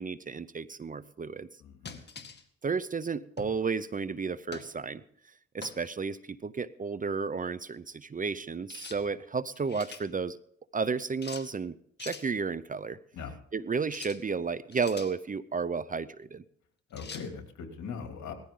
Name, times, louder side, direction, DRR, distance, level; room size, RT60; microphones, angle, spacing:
voice 1, 0.0-1.5 2.6-5.0 5.5-10.4 10.7-13.0 13.5-16.4, right 5 dB, 25° right, 16 dB, 0.7 m, -32 dB
voice 2, 1.6-2.0 13.1-13.4 16.9-18.3, left 5 dB, 70° left, 4 dB, 2.9 m, -40 dB
sound 1, 1.9-2.4 3.4-3.6 4.5-4.7 5.6-5.9 8.7-9.0 9.5-10.1 11.2-11.5 12.0-12.3 13.8-14.2 14.7-15.1 17.0-17.3, left 5 dB, 35° left, 2.1 m, -44 dB
18.5 x 14.5 x 3.8 m, 0.66 s
cardioid pair, 90°, 30 cm